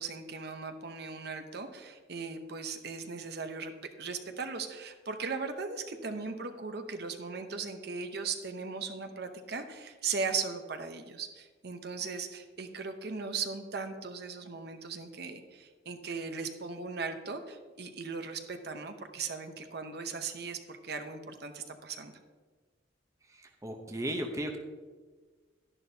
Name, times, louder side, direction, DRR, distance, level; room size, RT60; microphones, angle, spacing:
voice 1, 0.0-3.7 4.0-22.1, right 4 dB, 55° right, 7 dB, 0.8 m, -38 dB
voice 2, 23.6-24.6, right 1 dB, 15° right, 4 dB, 0.7 m, -34 dB
11.0 x 11.0 x 2.8 m, 1.4 s
head